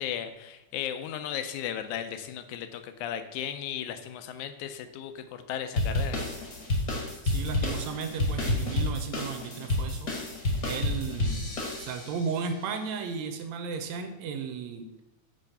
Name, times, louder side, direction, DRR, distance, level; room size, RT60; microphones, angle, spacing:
voice 1, 0.0-6.2, left 9 dB, 85° left, 9 dB, 2.0 m, -35 dB
sound 1, 5.8-12.2, left 2 dB, 50° left, 1.1 m, -30 dB
voice 2, 7.2-10.1 10.6-11.5 11.8-14.9, right 5 dB, 80° right, 6 dB, 1.8 m, -34 dB
6.2 x 3.3 x 5.5 m, 0.96 s
omnidirectional pair, 3.3 m